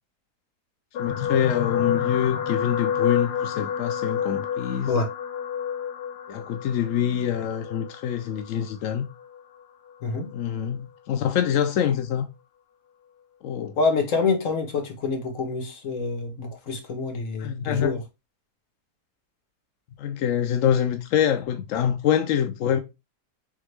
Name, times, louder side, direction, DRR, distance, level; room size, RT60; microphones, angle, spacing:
sound 1, 0.9-9.4 10.2-10.4 10.7-10.8, left 8 dB, 90° left, 1.2 m, -29 dB
voice 1, 1.0-5.0 6.3-9.1 10.3-12.3 13.4-13.8 17.4-18.0 20.0-22.8, left 9 dB, 70° left, 0.7 m, -25 dB
voice 2, 13.8-18.0, left 4 dB, 55° left, 1.3 m, -26 dB
3.6 x 3.6 x 3.2 m
omnidirectional pair, 1.8 m